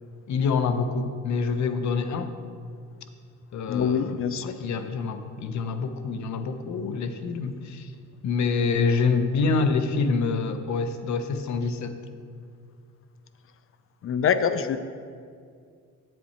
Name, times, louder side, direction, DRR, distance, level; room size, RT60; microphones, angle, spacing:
voice 1, 0.3-2.3 3.5-7.9 8.2-11.9, left 4 dB, 70° left, 9 dB, 0.8 m, -26 dB
voice 2, 3.7-4.6 14.0-14.8, left 7 dB, 45° left, 12 dB, 0.5 m, -24 dB
8.3 x 7.7 x 4.2 m, 2.2 s
cardioid pair, 90°, 30 cm